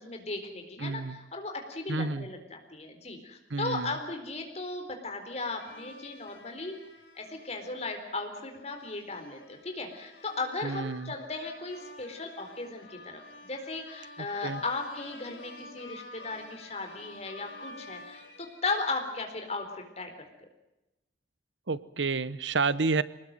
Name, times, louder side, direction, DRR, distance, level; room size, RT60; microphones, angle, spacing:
voice 1, 0.0-6.8 7.2-20.1, left 3 dB, 35° left, 5 dB, 4.2 m, -36 dB
voice 2, 0.8-1.2 1.9-2.3 3.5-4.0 10.6-11.1 14.2-14.6 21.7-23.0, right 4 dB, 85° right, 17 dB, 0.9 m, -30 dB
sound 1, 5.6-19.3, left 2 dB, 70° left, 4.4 m, -50 dB
24.5 x 19.5 x 7.7 m, 0.98 s
head